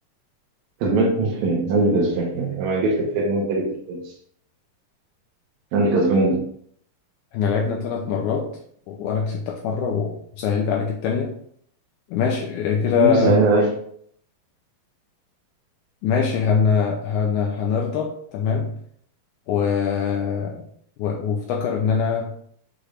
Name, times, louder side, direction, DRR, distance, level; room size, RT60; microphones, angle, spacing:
voice 1, 0.8-4.0 5.7-6.4 13.0-13.7, right 2 dB, 75° right, -2 dB, 1.8 m, -20 dB
voice 2, 7.3-8.5 8.9-11.3 12.1-13.5 16.0-18.8 19.5-20.6 21.0-22.3, left 6 dB, 90° left, 0 dB, 1.7 m, -23 dB
6.4 x 3.2 x 2.4 m, 0.63 s
omnidirectional pair, 4.1 m